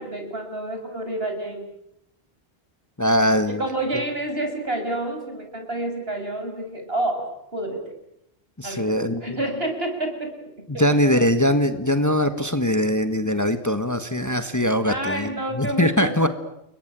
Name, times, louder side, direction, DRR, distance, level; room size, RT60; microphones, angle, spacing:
voice 1, 0.0-1.7 3.5-7.8 8.6-8.9 9.2-10.3 10.6-11.3 14.8-16.3, right 1 dB, 65° right, 5 dB, 6.2 m, -29 dB
voice 2, 3.0-3.6 8.6-9.4 10.7-16.3, equal, 15° left, 9 dB, 1.6 m, -22 dB
29.5 x 21.5 x 9.2 m, 0.79 s
omnidirectional pair, 1.1 m